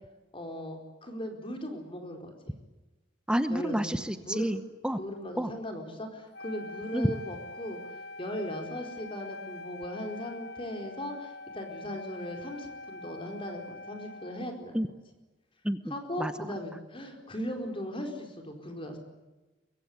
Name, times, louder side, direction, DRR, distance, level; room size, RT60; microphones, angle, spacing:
voice 1, 0.3-2.6 3.5-4.6 4.9-14.8 15.9-19.0, equal, 30° left, 4 dB, 4.5 m, -38 dB
voice 2, 3.3-5.0 5.4-5.5 6.9-7.1 14.7-14.9 15.6-16.3, equal, 5° right, 10 dB, 0.9 m, -29 dB
Wind instrument woodwind instrument, 6.3-14.6, left 2 dB, 60° left, 1.1 m, -44 dB
24.0 x 23.5 x 9.6 m, 1.1 s
head